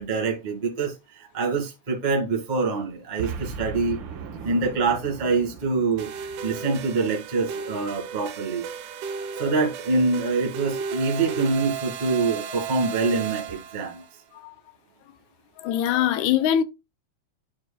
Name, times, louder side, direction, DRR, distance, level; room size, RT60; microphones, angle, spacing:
voice 1, 0.0-4.0 4.4-8.6 9.3-14.0, right 3 dB, 20° right, 1.2 m, -25 dB
Boom, 3.2-7.6, right 6 dB, 70° right, 1.1 m, -38 dB
sound 1, 6.0-14.1, right 7 dB, 90° right, 2.2 m, -34 dB
voice 2, 15.6-16.6, left 10 dB, 85° left, 2.0 m, -22 dB
10.5 x 4.5 x 2.2 m
omnidirectional pair, 3.3 m